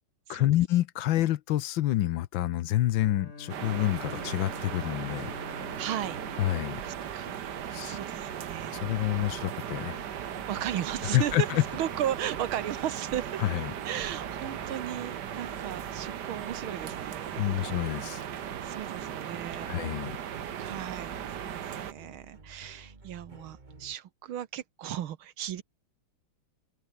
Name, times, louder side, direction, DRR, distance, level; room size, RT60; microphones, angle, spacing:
voice 1, 0.3-5.3 6.4-6.8 7.7-8.0 8.7-10.0 11.1-11.6 13.4-13.7 17.4-18.2 19.7-20.1, left 14 dB, 75° left, 1.4 m, -28 dB
Bowed string instrument, 2.9-8.0, left 3 dB, 35° left, 3.1 m, -46 dB
sound 1, 3.5-21.9, right 9 dB, 55° right, 1.6 m, -37 dB
voice 2, 5.8-6.2 6.8-8.8 10.5-13.4 13.9-17.7 18.6-19.8 20.6-21.2 21.4-25.6, right 11 dB, 80° right, 1.9 m, -36 dB
sound 2, 6.6-24.0, right 3 dB, 25° right, 1.9 m, -51 dB
open air
omnidirectional pair, 2.3 m